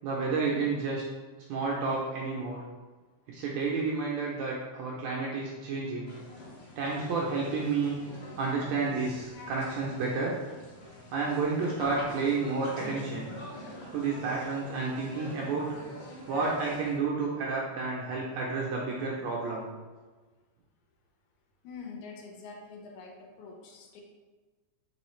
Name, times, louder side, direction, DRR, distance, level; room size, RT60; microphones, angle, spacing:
voice 1, 0.0-1.0 1.5-2.6 3.3-6.1 6.8-8.0 8.4-10.3 11.1-13.3 13.9-15.8 16.3-19.7, right 4 dB, 80° right, -3 dB, 1.6 m, -30 dB
sound 1, 6.1-17.0, left 1 dB, 65° left, 1.2 m, -44 dB
voice 2, 21.6-24.0, left 4 dB, 80° left, 1 dB, 1.9 m, -45 dB
4.6 x 3.1 x 3.1 m, 1.3 s
omnidirectional pair, 3.5 m